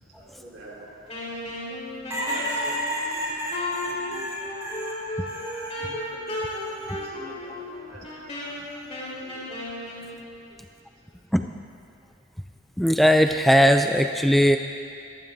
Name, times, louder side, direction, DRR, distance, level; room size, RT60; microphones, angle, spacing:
voice 1, 0.1-1.8 2.1-4.6 4.9-5.4 5.8-10.6 11.0-11.2, equal, 65° right, -5 dB, 4.2 m, -48 dB
Wind instrument woodwind instrument, 1.1-10.1, left 1 dB, 35° left, 3.8 m, -35 dB
sound 1, 2.1-5.8 6.3-7.1 8.4-8.9, equal, 15° right, 2.6 m, -32 dB
voice 2, 12.8-14.6, equal, ahead, 5 dB, 0.3 m, -19 dB
22.5 x 15.0 x 2.7 m, 2.5 s
head